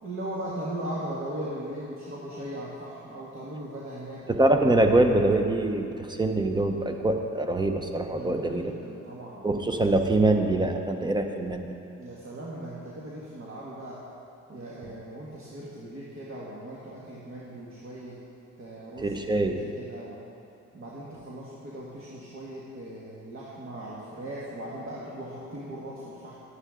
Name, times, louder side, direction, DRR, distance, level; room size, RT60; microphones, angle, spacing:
voice 1, 0.0-4.3 8.1-9.6 12.0-14.0 14.5-18.2 18.6-20.2 20.7-26.3, right 1 dB, 45° right, -6 dB, 1.7 m, -38 dB
voice 2, 4.3-8.7 9.4-11.7 19.0-19.6, right 2 dB, 15° right, 5 dB, 0.9 m, -24 dB
11.0 x 9.7 x 3.8 m, 2.7 s
cardioid pair, 90°, 30 cm